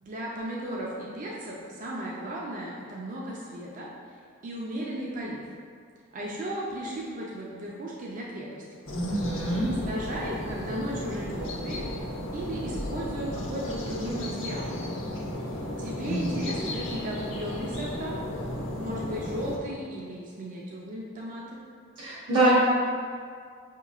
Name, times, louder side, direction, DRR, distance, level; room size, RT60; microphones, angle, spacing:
voice 1, 0.0-3.9 4.4-5.4 6.1-8.8 9.9-11.9 12.3-14.8 15.4-15.5 15.8-18.2 18.8-21.6, right 1 dB, 40° right, -4 dB, 0.4 m, -35 dB
sound 1, 8.9-19.6, left 1 dB, 75° left, 0.6 m, -34 dB
voice 2, 8.9-9.7 16.1-16.3 22.0-22.5, right 1 dB, 60° right, -9 dB, 0.8 m, -25 dB
5.3 x 2.9 x 2.4 m, 2.1 s
head